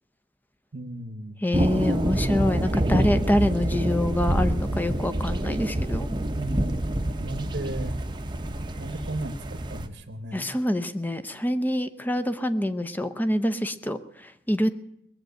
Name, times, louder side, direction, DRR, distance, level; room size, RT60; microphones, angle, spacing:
voice 1, 0.7-1.4 6.3-6.9 7.2-7.9 8.8-10.5, right 1 dB, 55° right, 7 dB, 0.9 m, -35 dB
voice 2, 1.4-6.1 10.3-14.7, left 1 dB, 10° left, 10 dB, 0.7 m, -26 dB
sound 1, 1.5-9.9, right 1 dB, 25° right, 0.8 m, -27 dB
20.0 x 7.7 x 9.1 m, 0.79 s
head